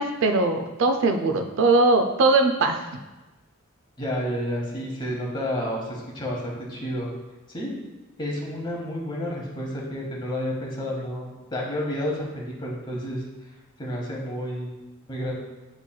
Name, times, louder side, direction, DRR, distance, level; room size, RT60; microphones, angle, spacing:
voice 1, 0.0-2.8, right 2 dB, 60° right, 5 dB, 0.3 m, -20 dB
voice 2, 4.0-7.1 7.5-7.7 8.2-13.2 13.8-14.7 15.1-15.4, equal, 20° left, -2 dB, 0.9 m, -30 dB
7.1 x 3.1 x 2.2 m, 1.1 s
head